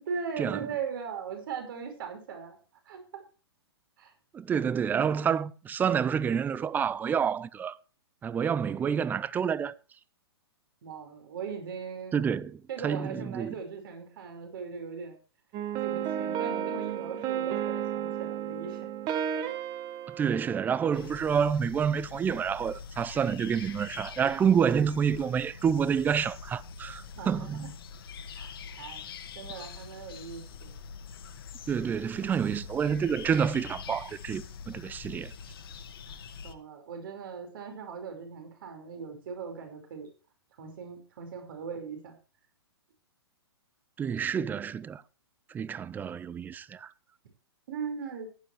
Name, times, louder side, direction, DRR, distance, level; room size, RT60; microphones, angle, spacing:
voice 1, 0.1-2.6 2.9-3.0 4.0-4.1 10.8-12.2 12.7-15.2 15.8-18.9 27.2-27.7 28.3-29.0 29.4-30.8 36.1-36.2 36.4-40.1 40.6-42.2 47.7-48.3, right 6 dB, 55° right, 5.2 m, -39 dB
voice 2, 4.3-7.8 8.2-9.7 12.1-13.5 20.1-27.7 31.7-35.3 44.0-45.0 45.5-46.9, right 7 dB, 15° right, 0.5 m, -28 dB
sound 1, 15.5-21.2, right 9 dB, 30° right, 1.7 m, -33 dB
sound 2, 20.9-36.5, left 6 dB, 60° left, 1.9 m, -44 dB
15.5 x 11.0 x 3.3 m
hypercardioid pair, 120°, 14 cm